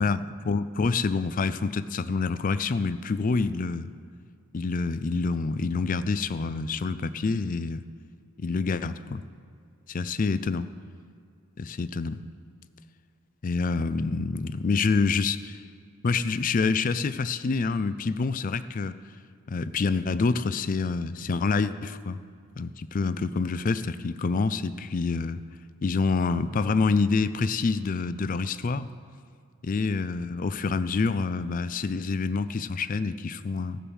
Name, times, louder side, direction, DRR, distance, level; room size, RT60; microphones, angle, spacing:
voice 1, 0.0-3.9 4.5-7.9 8.4-9.2 9.9-10.7 11.6-12.2 13.4-15.6 16.0-19.0 19.5-22.2 22.6-25.4 25.8-28.9 29.6-33.8, left 4 dB, 40° left, 14 dB, 0.4 m, -27 dB
16.5 x 6.7 x 6.2 m, 2.3 s
head